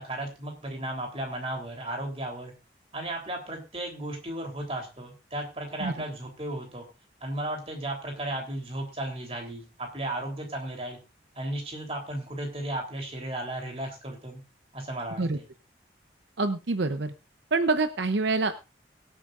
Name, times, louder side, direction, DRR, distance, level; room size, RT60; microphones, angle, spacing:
voice 1, 0.0-2.5 2.9-6.8 7.2-11.0 11.3-14.4 14.7-15.4, right 1 dB, 30° right, 2 dB, 3.4 m, -35 dB
voice 2, 16.4-17.1 17.5-18.5, right 3 dB, 75° right, 9 dB, 0.7 m, -26 dB
23.0 x 8.6 x 2.5 m, 0.29 s
head